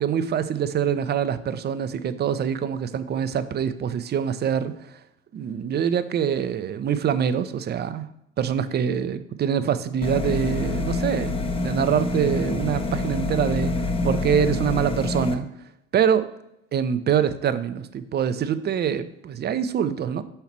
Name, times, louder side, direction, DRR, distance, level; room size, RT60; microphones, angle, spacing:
voice 1, 0.0-5.0 5.3-8.1 8.4-13.7 14.0-15.5 15.9-16.3 16.7-20.2, right 8 dB, 30° right, 12 dB, 0.6 m, -25 dB
sound 1, 10.0-15.3, left 2 dB, 15° left, 0.8 m, -26 dB
5.6 x 4.3 x 5.9 m, 0.80 s
hypercardioid pair, 65°, 36 cm